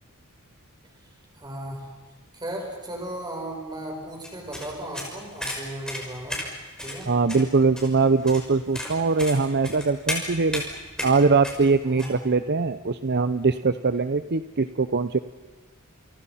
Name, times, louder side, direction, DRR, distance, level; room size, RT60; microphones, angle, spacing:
voice 1, 1.3-1.9 2.3-6.4 6.8-7.1 11.8-12.2, right 1 dB, 20° right, 0 dB, 7.8 m, -36 dB
sound 1, 4.2-12.1, left 1 dB, 5° left, 6.5 m, -34 dB
voice 2, 7.1-10.6 11.0-15.2, right 4 dB, 50° right, 11 dB, 0.8 m, -22 dB
30.0 x 30.0 x 5.8 m, 1.3 s
head